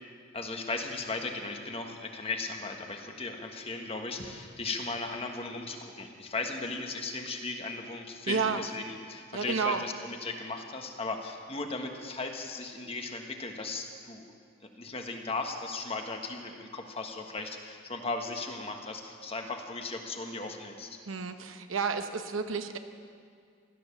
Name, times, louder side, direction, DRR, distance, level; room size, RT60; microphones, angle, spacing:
voice 1, 0.3-14.3 14.6-21.0, left 3 dB, 30° left, 3 dB, 1.4 m, -37 dB
voice 2, 8.3-8.6 9.3-9.8 21.1-22.8, right 5 dB, 80° right, 8 dB, 1.0 m, -31 dB
16.0 x 12.5 x 7.0 m, 2.2 s
head